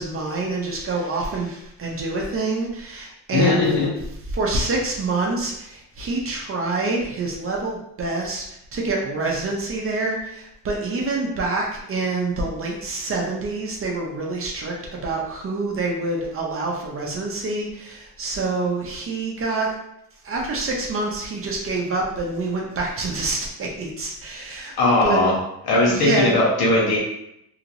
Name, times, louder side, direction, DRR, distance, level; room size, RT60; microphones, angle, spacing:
voice 1, 0.0-3.8 4.3-8.4 8.7-19.7 20.2-24.7 25.0-25.2 25.9-26.3, right 3 dB, 35° right, -1 dB, 0.6 m, -26 dB
voice 2, 3.3-3.9 24.8-25.4 25.7-27.0, left 2 dB, 70° left, -3 dB, 1.1 m, -18 dB
2.9 x 2.8 x 2.6 m, 0.80 s
cardioid pair, 140°, 39 cm